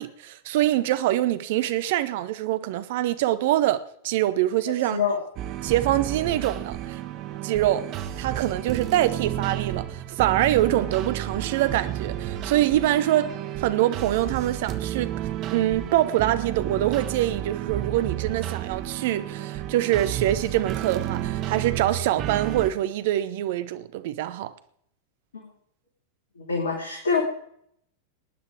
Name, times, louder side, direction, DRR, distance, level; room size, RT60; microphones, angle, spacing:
voice 1, 0.0-5.0 5.6-7.0 7.4-7.9 8.2-13.3 13.6-15.1 15.5-24.5, right 13 dB, 50° right, 0.9 m, -24 dB
voice 2, 4.8-5.2 25.3-25.5 26.4-27.2, left 5 dB, 70° left, 2.7 m, -25 dB
sound 1, 5.4-22.7, right 12 dB, 35° right, 1.2 m, -32 dB
19.0 x 9.9 x 4.8 m
figure-of-eight pair, 90°, 0 cm